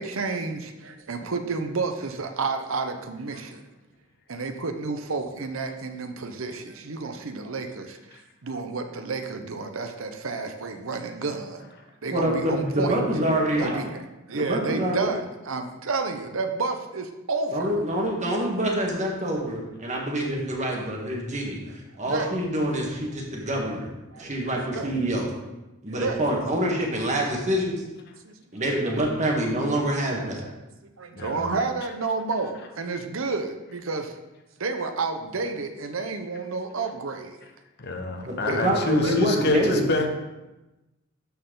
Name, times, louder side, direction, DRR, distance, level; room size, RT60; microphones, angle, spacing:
voice 1, 0.0-3.6 4.3-8.0 8.4-11.7 12.0-13.0 13.6-17.7 22.0-22.3 23.3-23.4 24.1-24.3 24.7-24.9 26.0-26.2 28.3-29.0 29.9-30.0 30.4-30.5 30.8-34.1 34.6-37.4 38.5-39.3, right 4 dB, 65° right, 6 dB, 0.8 m, -31 dB
voice 2, 12.1-13.8 14.3-15.1 17.5-23.9 24.2-25.3 25.8-27.8 28.5-30.4 38.3-39.9, right 1 dB, 35° right, -1 dB, 1.6 m, -26 dB
voice 3, 31.2-31.5 37.8-40.1, left 2 dB, 50° left, 4 dB, 1.0 m, -27 dB
12.5 x 4.5 x 3.9 m, 1.0 s
head